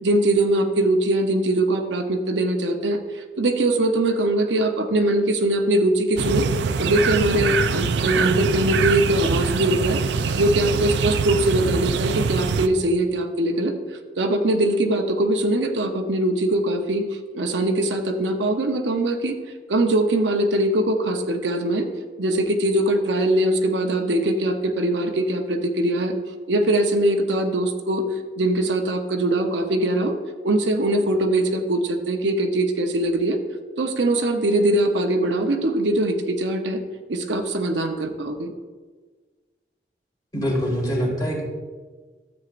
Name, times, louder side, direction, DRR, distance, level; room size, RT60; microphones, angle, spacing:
voice 1, 0.0-6.5 6.8-10.0 10.4-13.8 14.2-17.0 17.3-19.4 19.7-21.9 22.2-26.1 26.5-28.0 28.4-30.1 30.4-33.4 33.8-36.8 37.1-38.5, right 1 dB, 85° right, 4 dB, 0.8 m, -22 dB
sound 1, 6.2-12.7, right 5 dB, 70° right, 0.4 m, -24 dB
voice 2, 40.3-41.4, equal, 20° left, -1 dB, 2.0 m, -24 dB
13.0 x 8.0 x 2.5 m, 1.4 s
head